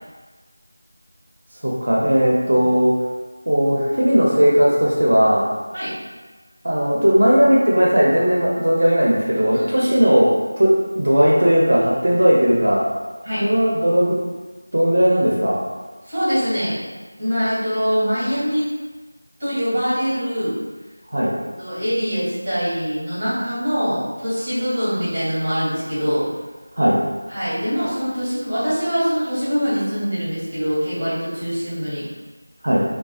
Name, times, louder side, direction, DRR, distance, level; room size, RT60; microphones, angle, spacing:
voice 1, 1.6-2.9 3.5-5.5 6.6-12.8 13.4-14.2 14.7-15.6 21.1-21.3 26.8-27.0 32.6-32.8, equal, 65° right, -5 dB, 0.5 m, -17 dB
voice 2, 9.5-9.9 13.2-13.4 16.1-16.8 17.2-18.7 19.4-20.6 21.6-26.3 27.3-32.0, equal, 20° right, -11 dB, 1.0 m, -23 dB
2.4 x 2.2 x 2.4 m, 1.3 s
figure-of-eight pair, 175°, 0 cm